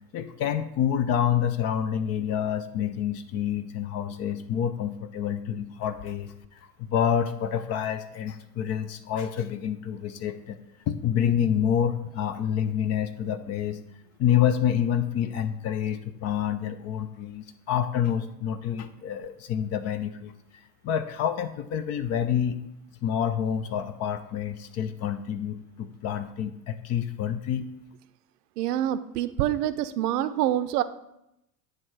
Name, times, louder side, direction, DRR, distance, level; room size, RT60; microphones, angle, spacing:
voice 1, 0.1-10.6 10.9-13.8 14.2-20.3 20.8-22.6 23.0-27.7, left 9 dB, 35° left, 12 dB, 0.5 m, -28 dB
voice 2, 28.6-30.8, right 12 dB, 70° right, 13 dB, 0.6 m, -26 dB
9.7 x 3.3 x 4.7 m, 0.83 s
hypercardioid pair, 85°, 49 cm